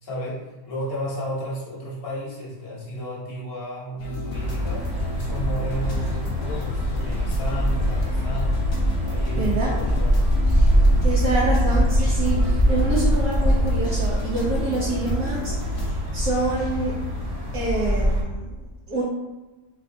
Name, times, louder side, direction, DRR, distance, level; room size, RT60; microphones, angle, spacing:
voice 1, 0.0-8.6 9.0-10.3, equal, 40° left, -6 dB, 1.2 m, -33 dB
sound 1, 4.0-15.9, equal, 70° left, 1.2 m, -32 dB
sound 2, 4.3-18.2, equal, 30° right, 0.8 m, -23 dB
voice 2, 9.4-9.7 11.0-16.9 17.5-19.0, right 2 dB, 65° right, -7 dB, 1.1 m, -27 dB
3.3 x 2.3 x 3.8 m, 1.1 s
omnidirectional pair, 1.7 m